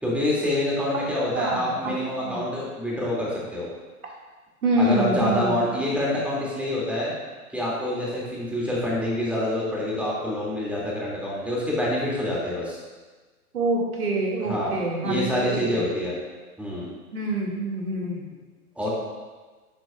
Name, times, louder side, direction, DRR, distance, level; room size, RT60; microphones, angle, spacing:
voice 1, 0.0-3.7 4.8-7.1 7.5-12.8 14.4-16.2 16.6-16.9 18.8-18.9, left 1 dB, 5° right, -6 dB, 2.6 m, -26 dB
voice 2, 1.3-1.9 2.2-2.4 4.6-5.6 13.5-15.8 17.1-18.2, right 1 dB, 75° right, -2 dB, 2.4 m, -26 dB
11.0 x 8.0 x 2.5 m, 1.3 s
figure-of-eight pair, 110°, 44 cm